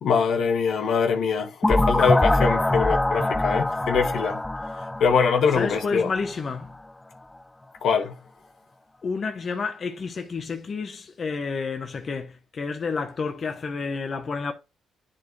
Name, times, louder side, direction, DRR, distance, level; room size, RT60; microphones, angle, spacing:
voice 1, 0.0-4.4 5.0-6.1 7.8-8.1, left 6 dB, 70° left, 1.2 m, -23 dB
sound 1, 1.6-6.3, left 2 dB, 15° left, 0.3 m, -24 dB
voice 2, 5.5-6.7 9.0-14.5, left 4 dB, 45° left, 1.0 m, -30 dB
10.0 x 4.2 x 3.2 m
cardioid pair, 90°, 0 cm